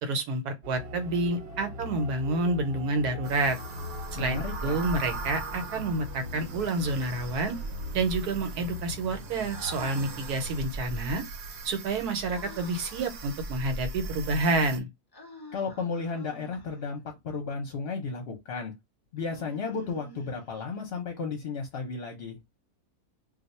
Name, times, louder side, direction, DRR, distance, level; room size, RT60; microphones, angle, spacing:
voice 1, 0.0-3.6 4.1-7.6 7.9-11.2 11.6-14.9, right 2 dB, 85° right, 1.3 m, -29 dB
sound 1, 0.6-10.6, left 2 dB, 50° right, 0.7 m, -41 dB
sound 2, 3.2-14.8, right 3 dB, 70° right, 1.1 m, -39 dB
voice 2, 4.2-4.8 15.5-18.7 19.1-22.4, left 4 dB, 50° left, 0.8 m, -34 dB
Human voice, 6.1-7.0 9.5-10.8 12.3-13.1 15.1-16.9 19.2-20.8, equal, 30° left, 0.4 m, -49 dB
2.5 x 2.3 x 4.1 m
omnidirectional pair, 1.6 m